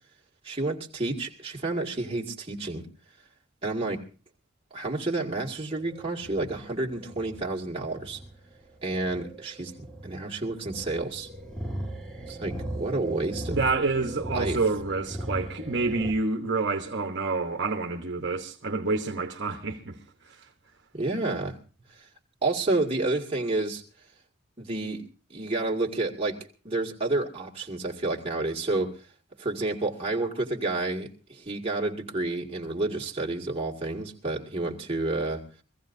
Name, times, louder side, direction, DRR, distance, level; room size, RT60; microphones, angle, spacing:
voice 1, 0.4-2.9 3.6-4.0 4.7-8.2 8.8-11.3 12.3-13.6 14.3-14.6 20.9-21.6 22.4-23.8 24.6-25.0 25.3-26.4 26.6-28.9 29.4-35.4, right 2 dB, 30° right, 2.1 m, -30 dB
sound 1, 5.7-16.1, right 1 dB, 5° left, 1.8 m, -38 dB
voice 2, 13.5-20.5, right 3 dB, 55° right, 1.1 m, -28 dB
24.0 x 15.5 x 2.7 m
head